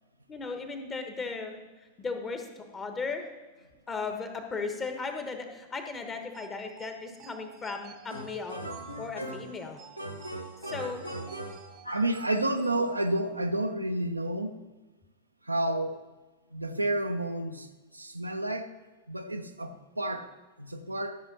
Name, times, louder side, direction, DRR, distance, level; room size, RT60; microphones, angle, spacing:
voice 1, 0.3-3.3 3.9-8.6 9.0-9.8 10.7-11.0 12.6-12.9, left 4 dB, 20° left, 1.3 m, -36 dB
sound 1, 6.3-13.2, right 8 dB, 30° right, 0.7 m, -52 dB
sound 2, 8.1-9.6 10.0-12.2, right 1 dB, 90° left, 0.9 m, -40 dB
voice 2, 11.9-14.6 15.5-16.0 16.5-17.7 17.9-18.7 19.1-20.3 20.6-21.2, right 1 dB, 85° right, 0.6 m, -30 dB
13.5 x 5.9 x 4.2 m
figure-of-eight pair, 90°, 0 cm